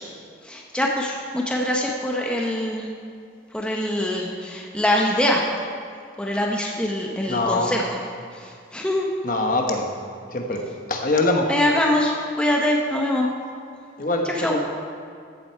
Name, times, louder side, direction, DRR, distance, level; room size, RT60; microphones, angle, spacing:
voice 1, 0.4-2.9 3.5-5.4 6.2-7.9 8.3-9.1 11.5-13.3 14.4-14.6, left 1 dB, 5° left, -1 dB, 0.8 m, -23 dB
voice 2, 7.3-7.7 9.2-10.0 10.3-11.5 14.0-14.6, left 2 dB, 45° left, 2 dB, 1.2 m, -23 dB
14.5 x 7.6 x 4.6 m, 2.3 s
head